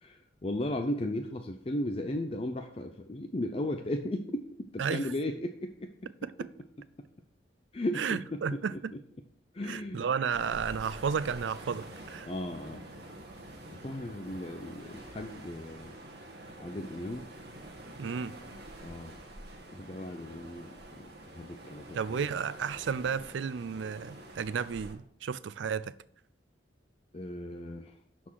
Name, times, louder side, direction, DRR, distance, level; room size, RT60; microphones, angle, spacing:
voice 1, 0.0-4.5 4.7-5.9 7.7-9.0 9.5-10.0 12.2-12.8 13.8-16.0 16.6-17.2 18.8-19.2 19.7-22.3 27.1-28.0, left 1 dB, 30° left, 0.5 m, -36 dB
voice 2, 4.8-5.1 6.2-6.5 8.0-8.7 9.6-12.3 18.0-18.3 21.9-25.9, right 6 dB, 90° right, 0.4 m, -33 dB
sound 1, 10.3-24.9, right 1 dB, 60° right, 1.6 m, -47 dB
11.0 x 4.3 x 4.7 m
head